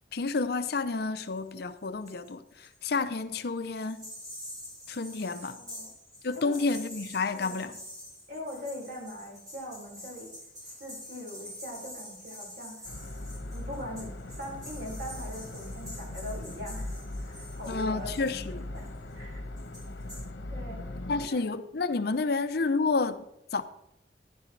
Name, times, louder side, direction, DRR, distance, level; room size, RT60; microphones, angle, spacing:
voice 1, 0.1-4.1 4.9-5.6 6.2-7.8 17.7-18.7 21.1-23.2 23.5-23.6, left 3 dB, 60° left, 0.6 m, -30 dB
sound 1, 1.2-2.3 2.5-3.2 3.6-19.1 19.6-20.2, left 1 dB, 20° right, 5.4 m, -46 dB
voice 2, 5.2-5.9 6.4-6.8 7.3-7.7 8.3-10.3 10.6-13.1 13.5-19.5 20.5-20.8 21.1-21.4, left 1 dB, 60° right, 5.3 m, -42 dB
sound 2, 12.8-21.3, left 1 dB, 85° left, 1.1 m, -39 dB
14.0 x 11.0 x 3.3 m
head